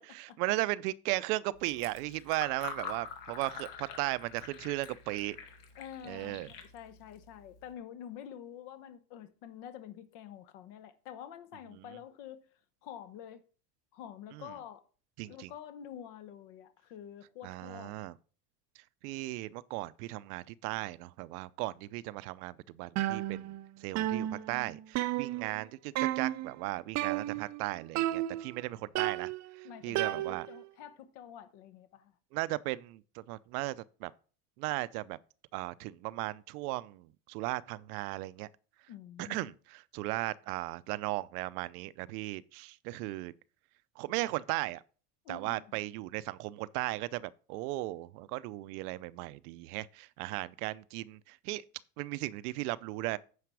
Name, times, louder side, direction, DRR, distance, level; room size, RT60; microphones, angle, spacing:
voice 1, 0.1-5.4 6.1-6.5 11.8-11.9 14.3-14.5 15.2-15.5 17.4-18.1 19.0-23.5 23.8-29.3 29.6-30.5 32.3-34.1 34.6-35.2 35.5-38.5 39.2-43.3 44.0-44.8 45.3-51.6 52.0-53.2, right 19 dB, 75° right, 0.7 m, -36 dB
Fill (with liquid), 1.5-7.7, left 6 dB, 85° left, 2.3 m, -46 dB
voice 2, 5.8-12.4 12.8-13.4 13.9-14.8 15.3-17.9 29.6-32.1 38.9-39.5 45.2-45.6, left 9 dB, 65° left, 1.1 m, -47 dB
sound 1, 23.0-23.7 24.0-25.6 26.0-26.5 27.0-27.6 28.0-28.6 29.0-30.7, right 14 dB, 40° right, 0.5 m, -33 dB
9.6 x 5.8 x 4.7 m
supercardioid pair, 115°, 46 cm